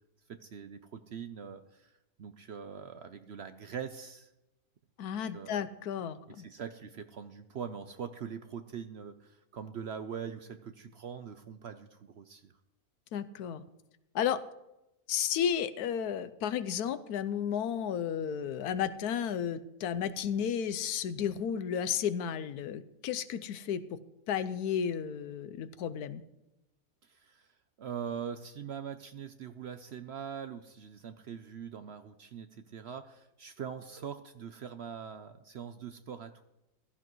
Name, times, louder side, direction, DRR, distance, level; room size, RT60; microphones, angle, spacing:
voice 1, 0.3-1.9 2.2-4.3 5.2-5.7 6.3-12.5 27.0-27.5 27.8-36.4, right 7 dB, 60° right, 9 dB, 0.7 m, -42 dB
voice 2, 5.0-6.5 13.1-13.6 14.1-14.4 15.1-24.0 24.3-26.2, left 8 dB, 85° left, 14 dB, 1.2 m, -33 dB
15.5 x 13.5 x 3.1 m, 0.93 s
omnidirectional pair, 1.6 m